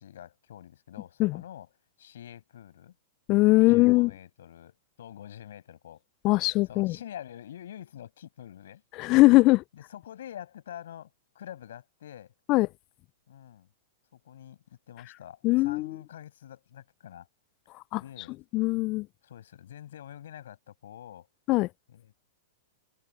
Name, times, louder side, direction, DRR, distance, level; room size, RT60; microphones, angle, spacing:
voice 1, 0.0-1.7 2.0-3.0 3.6-6.0 6.7-8.8 9.7-12.3 13.3-13.7 14.1-17.3 18.0-18.4 19.2-21.3 21.9-22.1, left 10 dB, 70° left, 6.1 m, -46 dB
voice 2, 3.3-4.1 6.2-7.0 9.0-9.6 12.5-12.7 15.4-16.0 17.9-18.0 18.5-19.1 21.5-21.7, left 21 dB, 40° left, 0.4 m, -21 dB
hypercardioid pair, 105°, 0 cm